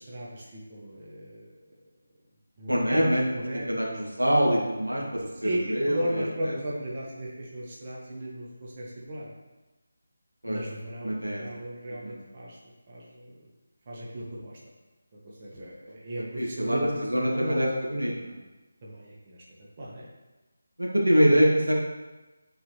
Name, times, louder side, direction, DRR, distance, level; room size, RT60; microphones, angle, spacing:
voice 1, 0.0-1.6 2.6-4.0 5.4-9.3 10.4-12.6 12.9-13.4 13.9-14.6 15.4-17.1 17.3-17.6 18.8-19.4 19.8-20.1, equal, 35° right, -5 dB, 1.4 m, -35 dB
voice 2, 2.7-3.2 3.5-6.6 10.4-10.6 11.0-11.4 12.0-12.2 16.3-18.3 20.8-21.7, equal, 90° right, -2 dB, 1.8 m, -25 dB
9.5 x 4.7 x 3.2 m, 1.1 s
figure-of-eight pair, 160°, 0 cm